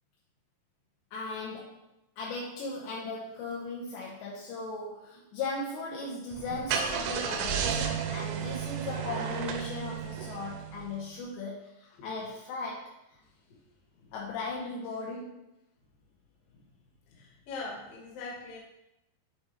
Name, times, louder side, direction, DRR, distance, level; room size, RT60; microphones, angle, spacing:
voice 1, 1.1-1.8 2.2-12.9 14.1-15.5, left 3 dB, 75° left, -4 dB, 3.0 m, -37 dB
Car / Engine starting, 6.3-11.0, right 7 dB, 80° right, 2.9 m, -33 dB
voice 2, 13.2-13.6 13.9-14.1 16.5-16.7 17.1-18.6, left 3 dB, 60° left, -3 dB, 2.8 m, -43 dB
11.0 x 4.0 x 3.2 m, 0.86 s
omnidirectional pair, 5.5 m